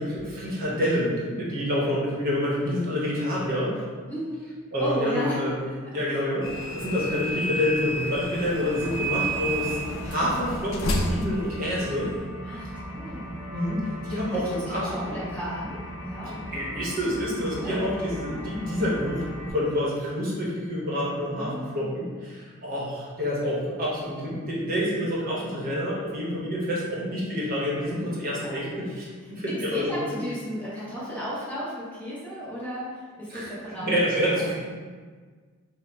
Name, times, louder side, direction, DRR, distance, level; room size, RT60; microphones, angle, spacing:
voice 1, 0.0-3.8 4.7-5.6 5.9-12.1 13.5-15.0 16.3-19.2 19.5-30.2 33.3-34.5, left 1 dB, 40° right, -5 dB, 0.8 m, -28 dB
voice 2, 4.1-4.5 4.8-5.4 6.0-6.2 12.4-13.5 14.3-16.3 17.5-17.8 18.3-18.4 21.3-22.0 27.8-28.0 28.2-28.6 29.7-33.9 34.4-34.5, equal, 5° left, -10 dB, 0.7 m, -34 dB
sound 1, 6.4-12.3, right 1 dB, 60° left, 0.4 m, -31 dB
sound 2, 8.8-19.5, equal, 40° left, 0.9 m, -38 dB
3.5 x 2.1 x 4.1 m, 1.5 s
head